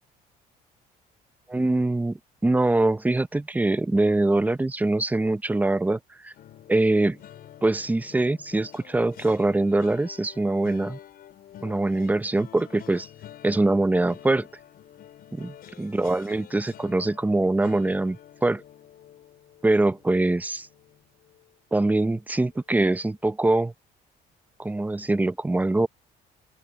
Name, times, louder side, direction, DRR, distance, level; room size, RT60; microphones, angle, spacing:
voice 1, 1.5-6.3 6.7-7.2 7.6-11.0 11.6-13.1 13.4-14.5 15.3-18.2 18.4-18.6 19.6-20.7 21.7-23.7 24.6-25.9, right 2 dB, 10° right, 0.8 m, -23 dB
sound 1, 6.3-21.5 21.9-22.1 22.4-22.6, left 11 dB, 65° left, 5.6 m, -48 dB
open air
cardioid pair, 110°, 17 cm